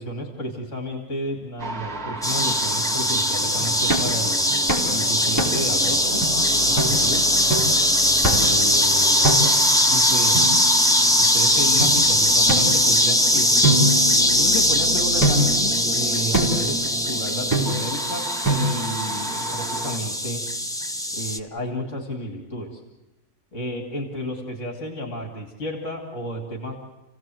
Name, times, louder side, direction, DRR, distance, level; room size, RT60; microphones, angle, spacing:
voice 1, 0.0-4.4 4.9-6.2 6.5-7.2 8.2-9.5 9.9-10.5 10.8-13.5 14.2-20.4 21.1-22.8 23.5-26.7, equal, 50° left, 1 dB, 2.7 m, -32 dB
sound 1, 1.6-20.0, right 2 dB, 70° right, 2.6 m, -33 dB
sound 2, 2.2-21.4, left 1 dB, 5° left, 0.5 m, -21 dB
sound 3, 3.9-4.2 4.7-4.9 5.4-5.7 6.2-6.3 6.8-7.0 7.5-7.8 8.2-8.6 9.2-9.7 10.3-11.1 11.8-11.9 12.5-13.2 13.6-14.7 15.2-15.6 16.3-16.7 17.5-18.0 18.4-19.0, right 1 dB, 10° right, 3.7 m, -24 dB
29.5 x 16.5 x 7.7 m, 1.0 s
omnidirectional pair, 1.6 m